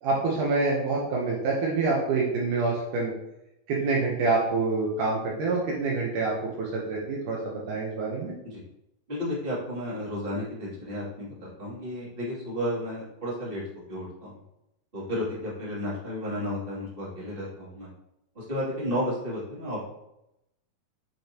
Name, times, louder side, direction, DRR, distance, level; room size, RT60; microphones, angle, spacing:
voice 1, 0.0-3.1 3.7-6.3 6.6-8.3, right 3 dB, 70° right, -3 dB, 2.4 m, -26 dB
voice 2, 9.1-13.6 13.9-14.4 14.9-17.9 18.3-19.8, left 1 dB, 15° right, -8 dB, 2.5 m, -32 dB
8.1 x 6.1 x 2.9 m, 0.86 s
omnidirectional pair, 4.1 m